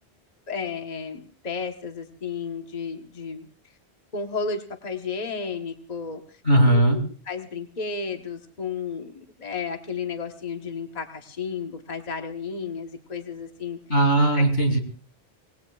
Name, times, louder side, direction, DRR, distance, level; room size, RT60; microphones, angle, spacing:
voice 1, 0.5-3.5 4.1-6.4 6.7-13.8 14.3-14.4, left 5 dB, 40° left, 4 dB, 1.2 m, -33 dB
voice 2, 6.4-7.0 13.9-14.8, right 1 dB, 85° left, 4 dB, 3.3 m, -18 dB
26.0 x 19.0 x 2.3 m, 0.40 s
omnidirectional pair, 1.1 m